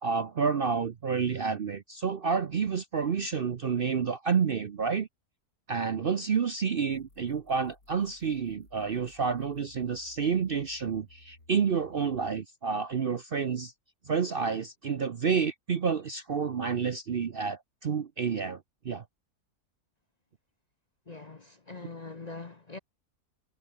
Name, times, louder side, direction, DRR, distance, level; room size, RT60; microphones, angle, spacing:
voice 1, 0.0-5.1 5.7-13.7 14.1-19.0, right 6 dB, 45° right, 0.8 m, -29 dB
sound 1, 6.9-12.4, left 2 dB, 65° left, 5.9 m, -59 dB
voice 2, 21.1-22.8, left 3 dB, 30° left, 0.9 m, -43 dB
omnidirectional pair, 1.7 m